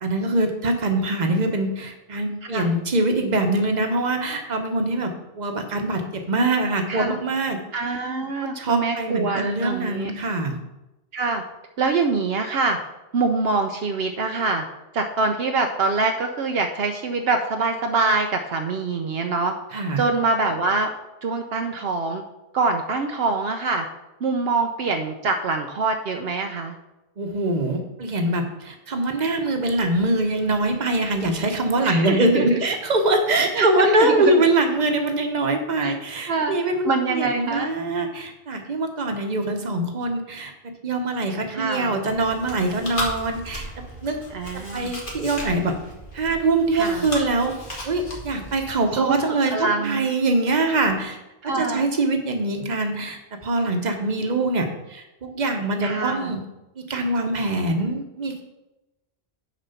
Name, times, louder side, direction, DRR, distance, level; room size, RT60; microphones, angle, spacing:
voice 1, 0.0-7.6 8.4-10.6 19.7-20.0 27.2-44.2 44.5-45.8 46.1-47.5 47.8-51.2 51.5-56.4 56.8-58.4, right 2 dB, 45° right, 5 dB, 1.1 m, -23 dB
voice 2, 7.7-10.1 11.1-11.4 11.8-12.8 13.1-14.6 14.9-20.9 21.2-22.2 22.5-23.9 24.2-26.7 31.8-32.5 33.5-34.3 35.8-36.0 36.3-36.5 36.8-37.7 41.5-42.0 44.3-44.9 46.7-47.1 49.0-49.1 49.5-50.1 51.4-51.9 55.8-56.3, right 3 dB, 70° right, 5 dB, 0.9 m, -24 dB
Chewing mastication, 42.1-48.7, left 1 dB, 50° left, 2.0 m, -35 dB
9.1 x 4.3 x 5.7 m, 0.97 s
omnidirectional pair, 1.1 m